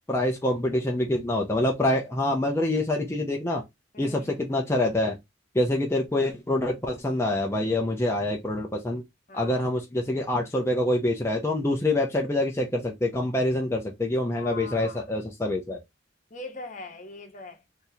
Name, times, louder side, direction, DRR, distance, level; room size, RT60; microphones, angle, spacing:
voice 1, 0.1-3.6 4.0-5.2 5.5-9.0 9.3-15.8, left 1 dB, 15° left, 0.6 m, -26 dB
voice 2, 3.9-4.3 9.3-9.7 14.4-15.1 16.3-17.6, left 3 dB, 40° left, 1.0 m, -41 dB
3.6 x 2.8 x 2.7 m
head